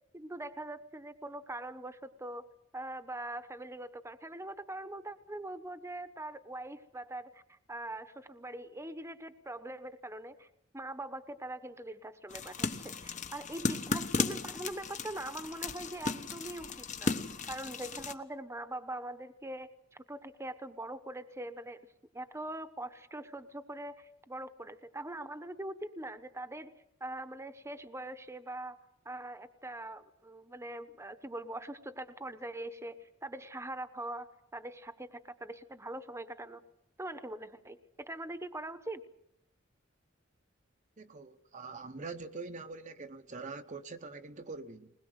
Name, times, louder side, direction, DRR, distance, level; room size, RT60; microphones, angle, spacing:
voice 1, 0.1-2.5 2.7-10.5 10.7-17.2 17.5-21.9 22.1-26.7 27.0-28.8 29.0-36.6 37.0-39.0, right 1 dB, 15° right, 1.0 m, -42 dB
sound 1, 12.3-18.1, left 3 dB, 40° left, 1.2 m, -35 dB
voice 2, 41.0-44.9, right 4 dB, 40° right, 0.9 m, -44 dB
21.0 x 21.0 x 8.0 m
head